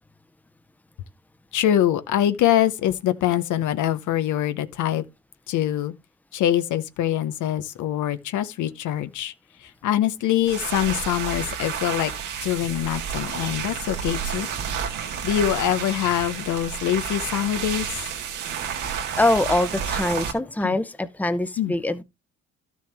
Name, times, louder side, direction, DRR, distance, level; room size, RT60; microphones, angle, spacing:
voice 1, 1.5-5.0 5.5-5.9 6.3-9.3 9.6-12.1 12.4-14.5 15.2-18.0 20.6-20.8 21.6-21.7, left 11 dB, 80° left, 0.8 m, -24 dB
sound 1, 10.4-20.3, right 7 dB, 90° right, 1.9 m, -30 dB
voice 2, 19.2-22.0, left 2 dB, 5° left, 0.7 m, -23 dB
12.0 x 6.3 x 3.4 m
cardioid pair, 90°, 30 cm